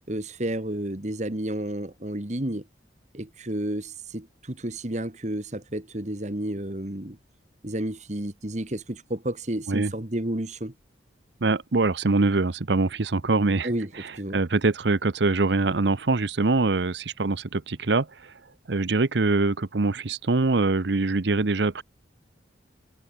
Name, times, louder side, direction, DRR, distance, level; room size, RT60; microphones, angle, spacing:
voice 1, 0.1-2.7 3.1-7.2 7.6-10.7 13.6-14.4, right 1 dB, 40° right, 2.0 m, -31 dB
voice 2, 11.4-13.7 14.0-18.3 18.7-21.8, right 3 dB, 65° right, 0.8 m, -24 dB
head